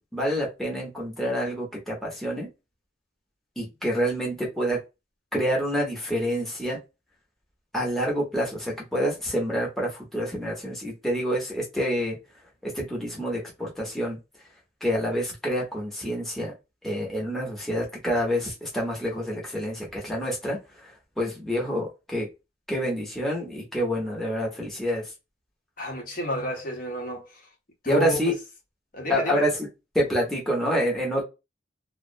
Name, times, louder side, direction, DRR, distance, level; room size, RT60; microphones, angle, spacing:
voice 1, 0.1-2.5 3.6-4.8 5.3-6.8 7.7-12.2 12.6-14.2 14.8-16.5 16.8-22.3 22.7-25.1 27.9-28.3 29.1-29.7 29.9-31.2, equal, ahead, 0.7 m, -27 dB
voice 2, 25.8-27.4 27.8-28.3 28.9-29.4, equal, 45° left, 0.7 m, -30 dB
2.3 x 2.1 x 2.5 m
head